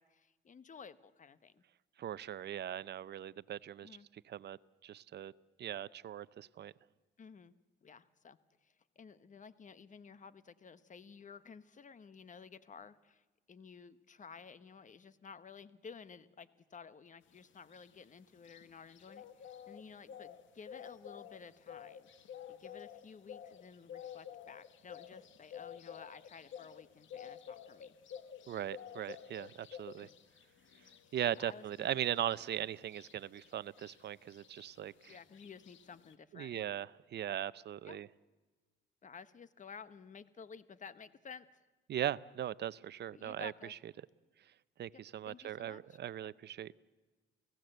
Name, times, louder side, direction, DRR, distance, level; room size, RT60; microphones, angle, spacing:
voice 1, 0.0-1.6 3.8-4.1 7.2-7.5 7.8-22.1 22.5-28.0 30.0-30.1 31.0-32.0 35.1-36.6 37.8-38.0 39.0-41.7 43.1-43.7 44.9-46.0, left 6 dB, 40° left, 15 dB, 1.2 m, -54 dB
voice 2, 2.0-3.9 4.3-4.6 4.8-5.3 5.6-6.7 28.5-30.1 31.1-35.1 36.3-36.9 37.1-38.1 41.9-43.5 44.8-46.7, right 11 dB, 60° right, 19 dB, 0.6 m, -39 dB
sound 1, 17.3-36.1, left 8 dB, 75° left, 1.7 m, -52 dB
29.0 x 17.0 x 7.9 m, 1.3 s
cardioid pair, 90°, 20 cm